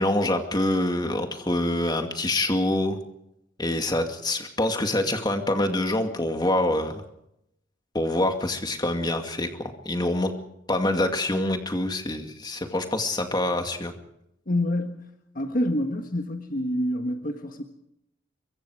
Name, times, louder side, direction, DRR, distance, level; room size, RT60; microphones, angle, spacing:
voice 1, 0.0-3.0 3.6-7.0 7.9-9.5 9.8-10.3 10.7-13.9, left 1 dB, 20° left, 5 dB, 2.2 m, -25 dB
voice 2, 14.5-15.1 15.3-17.6, left 1 dB, 45° left, 5 dB, 1.5 m, -27 dB
24.5 x 23.5 x 4.9 m, 0.81 s
head